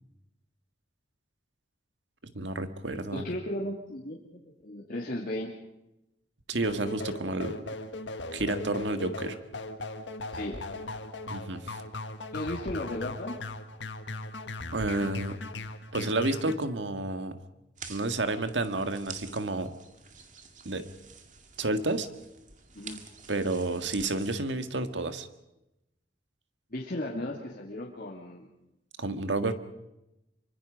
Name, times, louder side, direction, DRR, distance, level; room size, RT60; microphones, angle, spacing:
voice 1, 2.3-3.2 6.5-7.6 8.3-9.4 11.3-11.8 14.7-15.4 15.9-17.4 17.9-19.7 20.7-20.8 21.6-22.1 23.3-25.3 29.0-29.5, right 2 dB, 85° right, 9 dB, 1.7 m, -30 dB
voice 2, 3.1-5.5 10.3-10.6 12.3-13.4 22.7-23.0 26.7-28.5, left 1 dB, 55° left, -3 dB, 2.7 m, -35 dB
sound 1, 6.6-16.5, left 2 dB, 85° left, 1.6 m, -39 dB
sound 2, 17.8-24.4, right 6 dB, 45° right, 2.1 m, -48 dB
26.5 x 24.5 x 5.2 m, 0.91 s
head